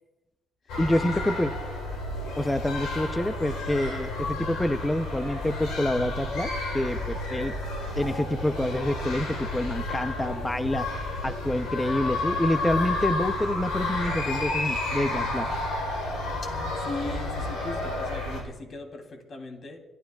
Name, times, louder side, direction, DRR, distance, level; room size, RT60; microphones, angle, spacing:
sound 1, 0.7-18.4, left 2 dB, 90° left, 3.9 m, -31 dB
voice 1, 0.8-1.5 2.4-6.5 6.7-7.5 8.0-10.9 11.2-15.5, left 1 dB, 10° left, 9 dB, 0.7 m, -27 dB
voice 2, 16.4-19.8, left 2 dB, 50° left, 3 dB, 3.1 m, -39 dB
30.0 x 14.0 x 2.4 m, 0.95 s
cardioid pair, 90°, 0 cm